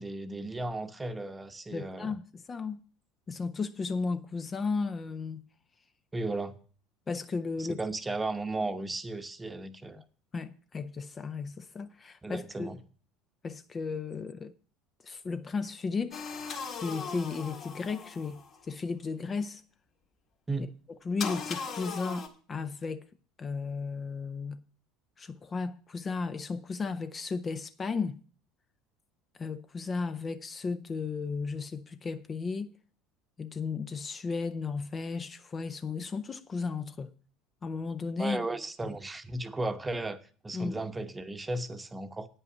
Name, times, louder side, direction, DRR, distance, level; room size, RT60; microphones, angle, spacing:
voice 1, 0.0-2.2 6.1-6.5 7.6-10.0 12.2-12.8 20.5-20.7 38.2-42.3, right 2 dB, 15° right, 0.9 m, -35 dB
voice 2, 1.7-2.8 3.3-5.4 7.1-7.8 10.3-12.8 13.4-14.5 15.0-16.2 16.8-19.6 21.1-23.0 23.4-24.6 25.2-28.2 29.4-32.7 33.4-37.1 37.6-38.4 38.8-38.9 40.5-40.8, left 4 dB, 30° left, 0.6 m, -34 dB
sound 1, 16.1-18.6 21.2-22.3, left 5 dB, 50° left, 1.8 m, -38 dB
9.3 x 5.5 x 8.2 m
hypercardioid pair, 70°, 0 cm